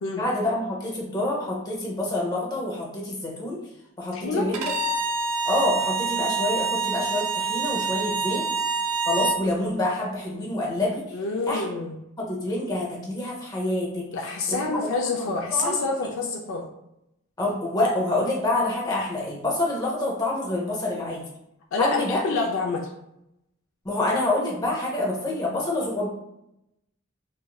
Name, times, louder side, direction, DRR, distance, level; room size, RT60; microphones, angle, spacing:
voice 1, 0.2-3.6 4.0-4.6 5.5-8.5 9.1-11.0 11.5-11.6 12.2-14.1 14.5-14.9 15.2-15.8 17.4-21.2 21.8-22.2 23.8-26.1, left 2 dB, 20° left, -3 dB, 0.7 m, -27 dB
voice 2, 4.1-4.5 11.1-12.0 14.1-16.7 21.7-22.9, left 3 dB, 65° left, 1 dB, 0.4 m, -27 dB
Bowed string instrument, 4.5-9.4, right 4 dB, 75° right, 0.4 m, -26 dB
3.0 x 2.6 x 2.3 m, 0.83 s
head